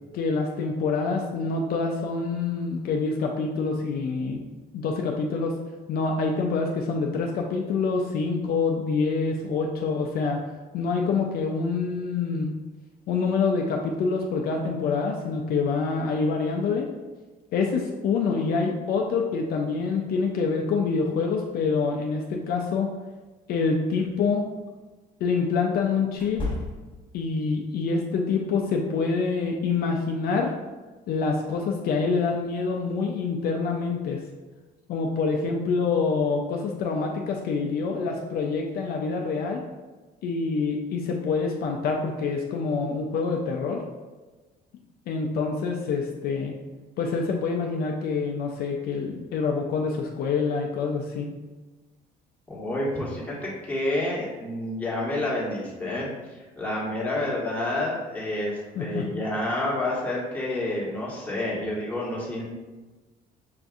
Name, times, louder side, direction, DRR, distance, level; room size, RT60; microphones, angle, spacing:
voice 1, 0.1-4.4 4.7-5.6 5.9-10.4 10.7-12.5 13.1-16.9 17.5-22.9 23.5-24.5 25.2-26.5 27.1-30.5 31.1-34.2 34.9-39.6 40.2-43.8 45.1-46.5 47.0-51.3 58.8-59.0, left 4 dB, 65° left, 1 dB, 0.4 m, -26 dB
sound 1, 23.9-24.1 26.1-27.1, left 2 dB, 30° left, 1.3 m, -33 dB
voice 2, 52.5-62.4, left 1 dB, 10° left, -6 dB, 1.3 m, -29 dB
5.7 x 2.6 x 2.4 m, 1.2 s
cardioid pair, 110°, 17 cm